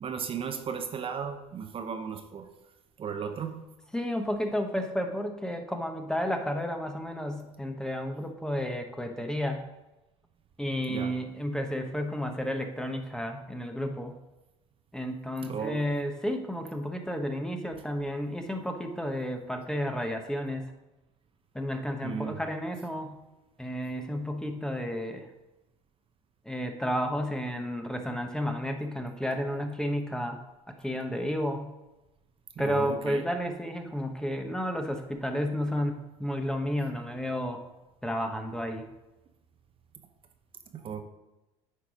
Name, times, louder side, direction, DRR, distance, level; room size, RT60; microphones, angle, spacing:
voice 1, 0.0-2.5 3.0-3.6 10.9-11.1 15.4-15.8 22.0-22.4 32.6-33.2 40.7-41.0, right 7 dB, 35° right, 7 dB, 0.8 m, -35 dB
voice 2, 3.9-9.6 10.6-14.1 14.9-20.7 21.5-23.2 23.6-25.3 26.5-30.4 30.7-31.7 32.6-37.6 38.0-38.9, equal, 5° left, 5 dB, 0.9 m, -32 dB
9.2 x 4.5 x 5.0 m, 1.0 s
hypercardioid pair, 85°, 15 cm